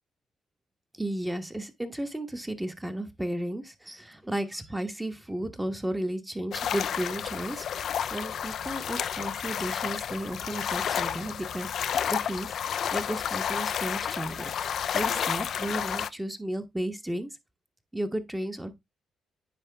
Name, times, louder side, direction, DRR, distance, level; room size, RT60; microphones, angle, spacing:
voice 1, 1.0-7.7 8.0-11.7 12.1-17.3 17.9-18.8, right 1 dB, 10° right, 1.2 m, -34 dB
sound 1, 6.5-16.1, left 8 dB, 65° left, 0.4 m, -31 dB
9.9 x 3.8 x 3.4 m
cardioid pair, 90°, 0 cm